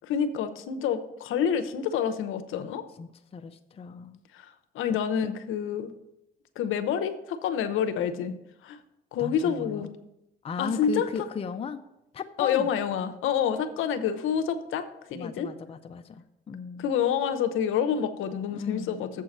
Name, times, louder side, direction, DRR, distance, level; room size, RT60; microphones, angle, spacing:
voice 1, 0.0-2.8 4.3-4.5 4.7-5.9 6.6-8.3 8.6-8.8 9.1-9.9 10.6-11.1 12.4-15.5 16.8-19.2, left 8 dB, 70° left, 10 dB, 0.8 m, -28 dB
voice 2, 3.0-4.2 4.9-5.0 5.2-5.4 9.2-9.9 10.4-11.8 12.1-12.7 15.1-16.9 18.5-19.0, left 6 dB, 30° left, 7 dB, 0.5 m, -36 dB
7.4 x 4.6 x 6.5 m, 0.86 s
cardioid pair, 100°, 21 cm